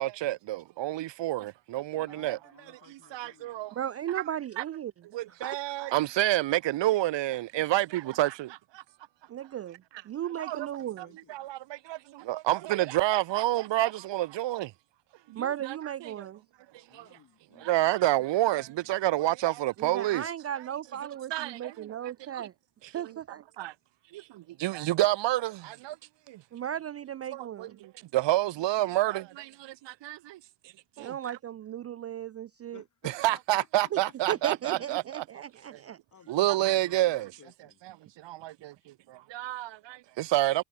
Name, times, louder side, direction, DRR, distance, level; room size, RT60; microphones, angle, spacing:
voice 1, 0.0-2.4 2.9-3.8 4.6-4.7 5.1-8.8 10.4-10.7 11.0-14.7 15.3-15.8 16.0-16.3 16.9-17.2 17.6-20.3 21.3-21.9 22.3-22.5 23.6-23.7 24.1-26.0 26.3-26.4 27.3-30.4 31.0-31.1 33.2-35.4 35.7-35.8 36.3-37.3 37.9-40.6, right 16 dB, 70° right, 1.1 m, -29 dB
voice 2, 1.9-3.7 10.6-11.3 16.9-19.2 28.3-28.7 32.7-34.7 36.1-37.8, left 7 dB, 40° left, 5.7 m, -56 dB
voice 3, 3.7-4.9 5.4-5.6 9.3-11.2 15.4-16.4 19.8-22.5 22.9-23.4 26.5-27.8 31.0-32.8 33.9-34.0 34.3-36.0, right 10 dB, 35° right, 0.4 m, -35 dB
cardioid pair, 115°, 44 cm